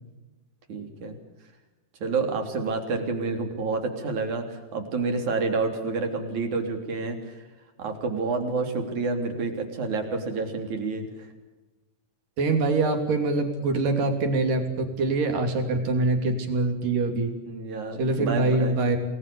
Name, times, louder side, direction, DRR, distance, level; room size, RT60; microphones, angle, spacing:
voice 1, 0.7-1.2 2.0-7.4 7.8-11.3 15.8-16.1 17.5-18.8, right 4 dB, 60° right, 5 dB, 4.7 m, -29 dB
voice 2, 12.4-17.3 18.0-19.0, right 3 dB, 80° right, 5 dB, 4.9 m, -24 dB
28.5 x 20.5 x 6.9 m, 1.1 s
omnidirectional pair, 3.8 m